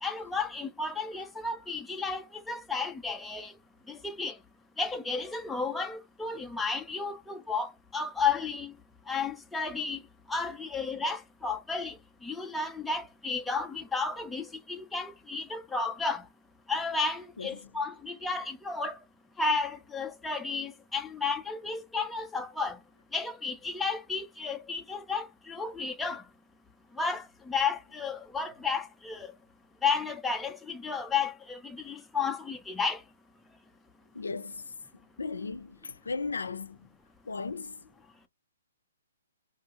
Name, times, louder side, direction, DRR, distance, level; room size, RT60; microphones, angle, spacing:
voice 1, 0.0-3.6 3.8-4.4 4.8-8.8 9.0-16.3 16.7-19.0 19.4-22.8 23.1-26.3 26.9-29.4 29.8-33.0, left 4 dB, 5° left, 0.4 m, -33 dB
voice 2, 17.4-17.7 34.1-34.7 35.2-36.9 37.3-37.8, left 4 dB, 90° left, 0.4 m, -36 dB
2.7 x 2.4 x 2.7 m
hypercardioid pair, 145°, 0 cm